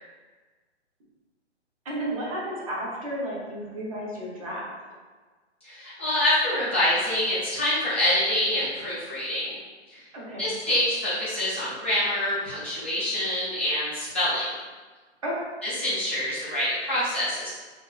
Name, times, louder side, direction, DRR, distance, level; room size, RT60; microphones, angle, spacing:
voice 1, 1.8-4.7 10.1-10.5 15.2-15.5, right 1 dB, 30° right, -5 dB, 0.9 m, -32 dB
voice 2, 5.6-9.6 9.9-10.0 10.4-14.5 15.6-17.5, left 1 dB, 10° left, -13 dB, 0.4 m, -26 dB
5.9 x 2.5 x 2.4 m, 1.3 s
hypercardioid pair, 175°, 34 cm